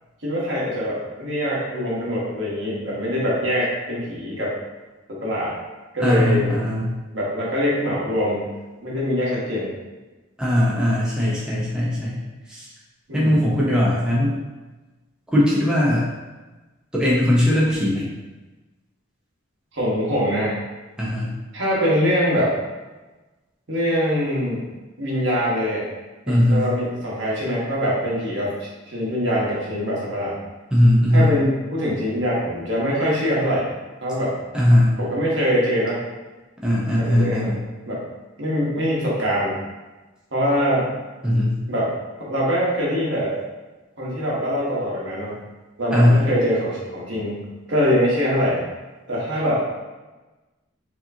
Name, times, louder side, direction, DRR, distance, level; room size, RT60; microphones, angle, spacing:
voice 1, 0.2-4.5 5.1-5.5 5.9-6.5 7.1-8.5 8.8-9.7 13.1-13.5 19.7-20.6 21.5-22.5 23.7-24.6 25.0-25.9 26.3-30.4 31.1-33.7 34.0-34.3 35.0-36.0 37.0-37.5 37.9-38.0 38.4-39.6 40.3-40.9 41.7-41.9 42.2-43.3 44.0-45.4 45.8-48.6 49.1-49.7, equal, 60° right, -6 dB, 1.3 m, -23 dB
voice 2, 6.0-6.9 10.4-12.2 12.5-12.7 13.1-14.4 15.3-16.0 16.9-18.1 21.0-21.4 26.3-26.7 30.7-31.3 34.5-34.9 36.6-37.6 41.2-41.6 45.9-46.3, left 1 dB, 5° right, -7 dB, 0.7 m, -19 dB
4.7 x 2.9 x 2.7 m, 1.2 s
head